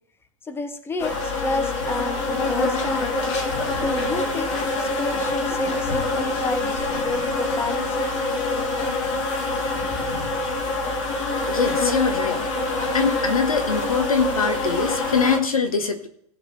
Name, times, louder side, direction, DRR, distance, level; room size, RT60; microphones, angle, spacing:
voice 1, 0.4-3.2 3.8-8.1 9.7-10.1, left 2 dB, 15° left, 9 dB, 1.2 m, -30 dB
sound 1, 1.0-15.4, left 2 dB, 60° left, 2.7 m, -25 dB
voice 2, 11.5-12.4 12.9-16.1, left 5 dB, 90° left, 7 dB, 1.4 m, -23 dB
17.5 x 6.9 x 3.4 m, 0.75 s
hypercardioid pair, 100°, 18 cm